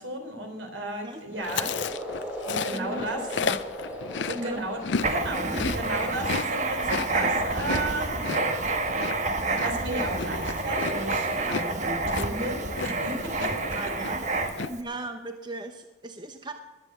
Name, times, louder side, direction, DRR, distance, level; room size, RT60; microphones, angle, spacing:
voice 1, 0.0-1.7 2.5-3.2 4.3-4.8 5.1-8.2 9.2-13.6 13.8-13.9 14.3-14.7, right 1 dB, 85° right, 4 dB, 3.7 m, -34 dB
sound 1, 1.3-13.8, equal, 10° right, 2.5 m, -40 dB
Chewing mastication, 1.4-5.1 5.4-13.1 13.4-13.7 14.0-14.7, left 6 dB, 70° left, 0.5 m, -33 dB
voice 2, 2.7-3.6 4.4-4.6 5.6-5.7 13.4-14.2 14.7-16.5, right 2 dB, 25° right, 6 dB, 0.9 m, -38 dB
Writing, 5.0-14.8, right 3 dB, 40° right, 1.3 m, -28 dB
20.5 x 8.1 x 7.9 m, 1.2 s
head